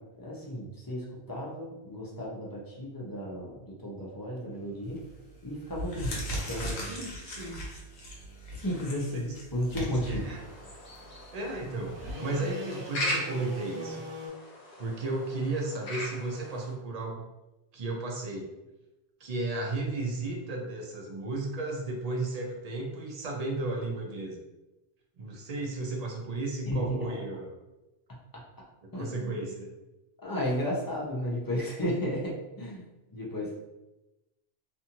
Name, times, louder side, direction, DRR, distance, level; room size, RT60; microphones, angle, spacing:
voice 1, 0.1-5.0 5.4-6.2 6.5-7.0 8.6-10.3 26.7-27.2 28.1-28.2 28.9-29.4 30.2-33.5, equal, 30° left, -4 dB, 0.5 m, -34 dB
sound 1, 4.5-14.3, equal, 75° right, 1.0 m, -46 dB
sound 2, 4.9-5.2 5.6-12.1, equal, 90° left, 1.0 m, -38 dB
voice 2, 6.9-7.6 9.1-9.4 10.1-10.4 11.3-14.0 14.8-17.2 17.7-18.5 19.2-24.4 25.2-27.5 28.9-29.7, right 2 dB, 50° right, 0 dB, 0.6 m, -34 dB
sound 3, 10.0-16.7, left 1 dB, 55° left, 0.8 m, -39 dB
2.5 x 2.5 x 2.8 m, 0.98 s
omnidirectional pair, 1.1 m